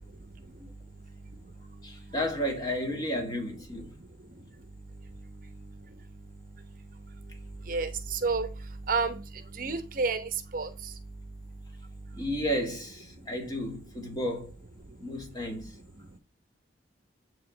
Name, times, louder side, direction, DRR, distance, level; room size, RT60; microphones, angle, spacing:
voice 1, 1.8-3.9 12.1-14.5 15.0-15.8, equal, 20° left, 2.1 m, -32 dB
voice 2, 7.7-8.5 8.9-9.2 9.6-10.7, right 4 dB, 50° right, 0.9 m, -29 dB
9.3 x 3.7 x 6.7 m
head